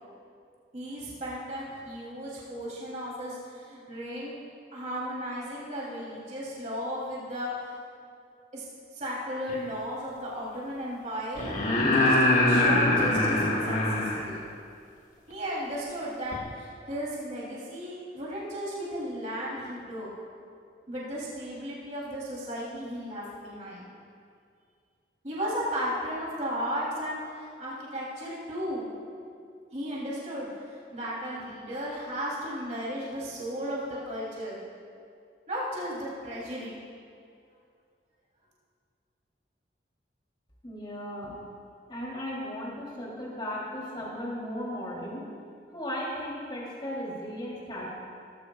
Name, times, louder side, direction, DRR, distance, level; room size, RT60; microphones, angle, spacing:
voice 1, 0.7-4.4 4.7-7.8 8.5-8.6 8.9-11.6 11.9-13.8 14.1-14.4 15.3-20.1 20.9-23.9 25.2-28.8 29.7-34.6 35.5-36.8, equal, 40° right, -6 dB, 3.1 m, -35 dB
sound 1, 9.5-9.6 11.4-14.3 16.3-16.4, left 1 dB, 40° left, 1.8 m, -23 dB
voice 2, 40.6-41.4 41.9-45.2 45.7-47.9, equal, 25° left, -4 dB, 3.0 m, -36 dB
18.0 x 14.5 x 2.3 m, 2.4 s
head